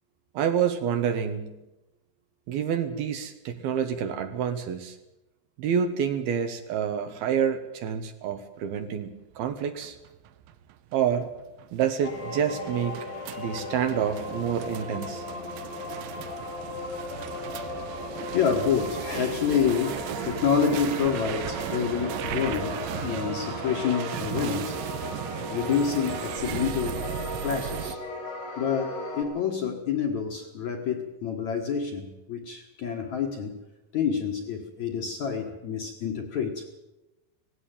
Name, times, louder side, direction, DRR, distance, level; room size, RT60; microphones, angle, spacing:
voice 1, 0.3-1.6 2.5-5.0 5.6-9.1 9.4-10.0 10.9-11.3 11.7-13.1 13.4-15.2 15.9-16.1 18.6-18.7, right 8 dB, 70° right, 7 dB, 2.8 m, -28 dB
sound 1, 9.3-28.0, right 11 dB, 85° right, 3.4 m, -36 dB
sound 2, 12.0-29.2, left 3 dB, 85° left, 7.2 m, -37 dB
voice 2, 18.3-24.9 25.5-27.1 27.4-28.0 28.6-33.6 33.9-36.8, left 6 dB, 55° left, 2 dB, 2.2 m, -28 dB
18.5 x 16.5 x 9.0 m, 0.98 s
omnidirectional pair, 5.2 m